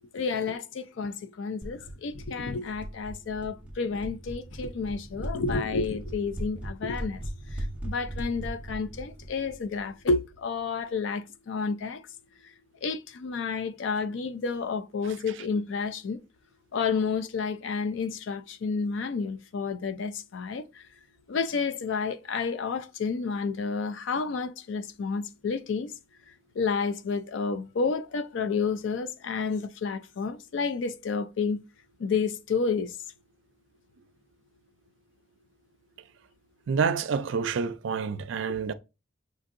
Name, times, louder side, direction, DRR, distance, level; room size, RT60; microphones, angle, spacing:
voice 1, 0.1-12.1 12.4-12.5 12.8-16.2 16.7-20.9 21.3-25.9 26.5-31.6 32.0-33.0 38.5-38.7, left 5 dB, 65° left, 0.4 m, -30 dB
sound 1, 1.6-10.3, right 1 dB, 5° right, 0.6 m, -38 dB
voice 2, 36.7-38.7, right 5 dB, 65° right, 0.3 m, -28 dB
6.1 x 2.6 x 2.5 m
head